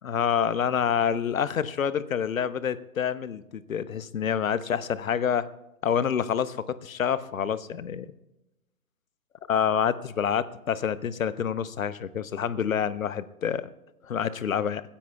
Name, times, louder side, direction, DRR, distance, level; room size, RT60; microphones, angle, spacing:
voice 1, 0.0-5.5 5.8-8.1 9.5-13.7 14.0-14.8, left 8 dB, 60° left, 16 dB, 0.9 m, -27 dB
22.0 x 15.5 x 2.3 m, 0.96 s
figure-of-eight pair, 140°, 45 cm